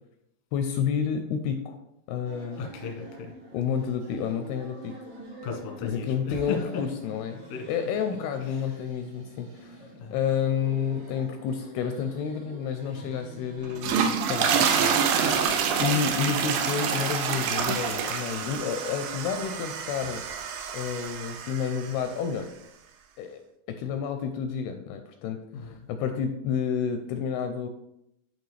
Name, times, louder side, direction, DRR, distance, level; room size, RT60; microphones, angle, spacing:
voice 1, 0.5-1.8 2.1-2.7 3.5-4.9 5.8-7.4 7.7-15.0 15.4-20.2 20.7-22.5 23.2-23.4 23.7-27.7, left 7 dB, 80° left, 7 dB, 2.3 m, -30 dB
sound 1, 2.3-16.3, right 1 dB, 45° right, 2.7 m, -47 dB
voice 2, 2.6-3.3 5.4-6.8 7.5-7.6 8.4-8.8 9.9-10.2 13.0-13.2 15.2-15.6 25.5-25.9, left 5 dB, 65° left, 0 dB, 1.6 m, -36 dB
sound 2, 13.6-22.0, right 7 dB, 85° right, 2.0 m, -27 dB
10.5 x 4.4 x 3.2 m, 0.82 s
omnidirectional pair, 4.8 m